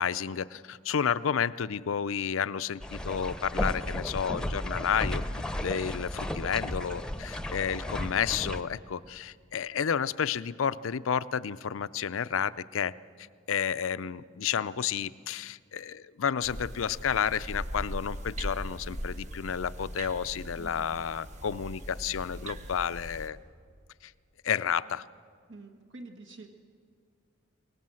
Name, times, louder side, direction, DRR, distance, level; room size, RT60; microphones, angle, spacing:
voice 1, 0.0-5.2 5.6-12.9 13.5-23.4 24.0-24.1 24.4-25.0, left 7 dB, 75° left, 16 dB, 0.5 m, -31 dB
sound 1, 2.8-8.6, left 1 dB, 5° left, 0.8 m, -34 dB
sound 2, 16.4-23.3, equal, 35° right, 1.3 m, -40 dB
voice 2, 20.6-21.0 25.5-26.5, right 2 dB, 65° right, 4 dB, 1.5 m, -47 dB
22.5 x 19.0 x 7.7 m, 2.1 s
head